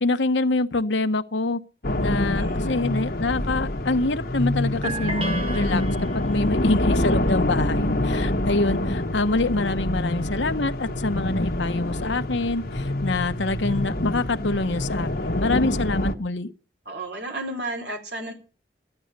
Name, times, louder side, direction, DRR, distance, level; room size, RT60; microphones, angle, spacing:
voice 1, 0.0-1.6 2.0-5.8 6.1-16.5, left 2 dB, 75° left, 1.1 m, -25 dB
sound 1, 1.8-16.1, left 1 dB, 50° left, 1.4 m, -26 dB
voice 2, 2.3-2.8 16.9-18.3, right 1 dB, 60° right, 3.9 m, -33 dB
sound 2, 4.8-6.6, right 2 dB, 30° right, 1.5 m, -32 dB
14.0 x 11.0 x 6.7 m
head